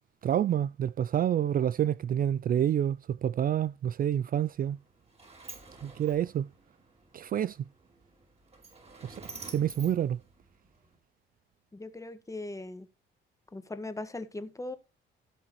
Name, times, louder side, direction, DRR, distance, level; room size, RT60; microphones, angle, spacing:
voice 1, 0.2-4.8 5.8-6.5 7.1-7.6 9.0-9.2 9.5-10.2, right 10 dB, 45° right, 0.4 m, -28 dB
Sliding door, 4.5-10.9, right 3 dB, 30° right, 4.6 m, -50 dB
voice 2, 11.7-12.9 13.5-14.8, left 2 dB, 15° left, 1.6 m, -39 dB
16.0 x 6.2 x 3.1 m
cardioid pair, 90°, 20 cm